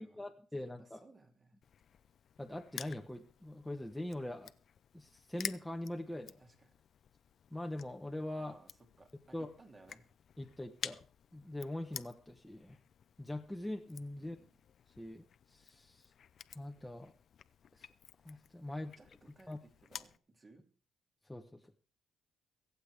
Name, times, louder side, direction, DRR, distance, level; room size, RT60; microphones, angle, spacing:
voice 1, 0.0-1.0 2.4-4.5 4.9-6.4 7.5-8.6 9.3-9.5 10.4-11.0 11.3-12.8 13.2-14.4 15.0-16.1 16.5-17.1 17.7-17.9 18.2-18.9 19.5-19.6 21.3-21.7, left 1 dB, 5° left, 3 dB, 0.9 m, -42 dB
voice 2, 0.6-1.6 6.4-6.7 8.4-10.1 14.2-14.6 18.9-20.7, right 2 dB, 30° right, 4 dB, 2.6 m, -61 dB
Crushing, 1.6-20.2, left 8 dB, 60° left, 0.5 m, -51 dB
23.5 x 8.0 x 3.4 m, 0.40 s
cardioid pair, 90°, 0 cm